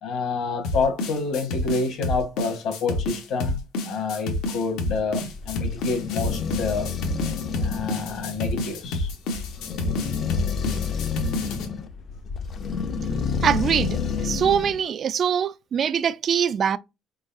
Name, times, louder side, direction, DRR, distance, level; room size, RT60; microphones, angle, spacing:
voice 1, 0.0-6.9 7.6-9.1, left 4 dB, 60° left, 1.4 m, -28 dB
sound 1, 0.6-11.7, left 2 dB, 80° left, 1.2 m, -29 dB
sound 2, 5.1-14.8, left 6 dB, 35° left, 0.5 m, -30 dB
voice 2, 13.4-16.8, right 8 dB, 35° right, 0.3 m, -23 dB
4.5 x 3.9 x 2.6 m
cardioid pair, 160°, 0 cm